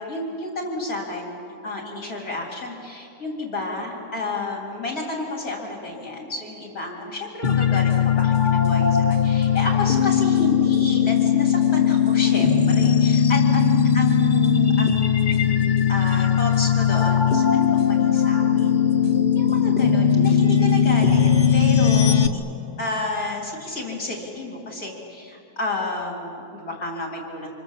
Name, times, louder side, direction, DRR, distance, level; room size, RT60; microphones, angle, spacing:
voice 1, 0.0-1.4 1.6-18.7 19.3-22.2 22.8-27.5, left 2 dB, 60° left, -1 dB, 3.8 m, -31 dB
sound 1, 7.4-22.3, left 8 dB, 35° left, 0.8 m, -19 dB
28.5 x 27.0 x 7.5 m, 2.7 s
omnidirectional pair, 1.7 m